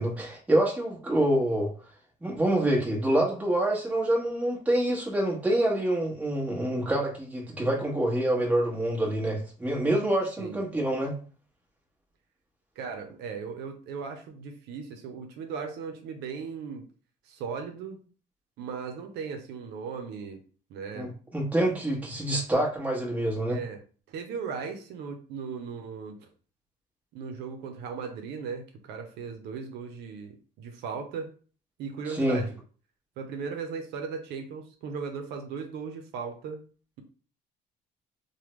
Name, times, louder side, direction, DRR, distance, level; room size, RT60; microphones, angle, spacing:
voice 1, 0.0-1.7 2.2-11.1 20.9-23.6 32.1-32.4, right 1 dB, 10° right, -3 dB, 1.1 m, -26 dB
voice 2, 12.8-16.8 17.2-18.0 18.6-20.4 20.7-21.1 23.5-23.8 24.1-26.3 27.1-31.3 31.8-32.6 33.2-36.6, right 5 dB, 85° right, 5 dB, 0.6 m, -37 dB
3.3 x 2.2 x 3.0 m, 0.40 s
cardioid pair, 110°, 17 cm